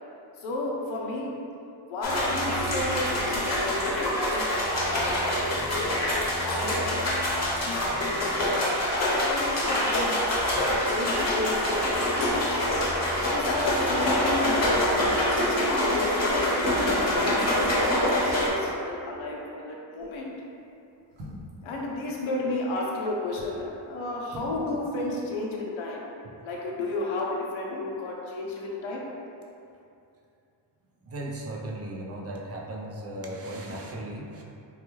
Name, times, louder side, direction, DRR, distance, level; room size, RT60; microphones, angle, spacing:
voice 1, 0.4-1.3 1.8-4.5 4.8-5.9 6.4-7.0 7.4-12.6 13.2-16.4 16.9-20.3 21.6-26.0 26.4-29.0, left 2 dB, 90° left, -2 dB, 0.6 m, -33 dB
sound 1, 2.0-18.5, left 1 dB, 35° left, 0.8 m, -25 dB
sound 2, 20.0-20.3 21.1-21.7 23.1-23.6 24.2-24.7 24.9-25.0, equal, 55° right, 0.9 m, -43 dB
voice 2, 31.0-34.4, right 1 dB, 35° right, -1 dB, 0.5 m, -36 dB
3.5 x 2.3 x 3.0 m, 2.6 s
cardioid pair, 90°, 46 cm